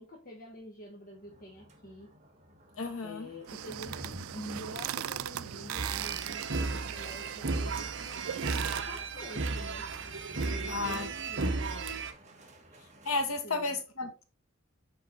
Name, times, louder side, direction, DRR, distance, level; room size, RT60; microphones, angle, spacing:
voice 1, 0.0-2.1 3.0-8.5 8.9-9.9 10.5-11.5 13.4-13.8, equal, 45° left, 1.4 m, -47 dB
sound 1, 1.1-13.4, equal, 35° right, 1.5 m, -53 dB
voice 2, 2.8-3.3 10.7-11.1 13.1-14.2, left 3 dB, 85° left, 1.7 m, -33 dB
sound 2, 3.5-8.8, right 11 dB, 85° right, 0.4 m, -39 dB
sound 3, 5.8-12.1, right 3 dB, 60° right, 1.0 m, -34 dB
6.0 x 5.3 x 4.0 m
head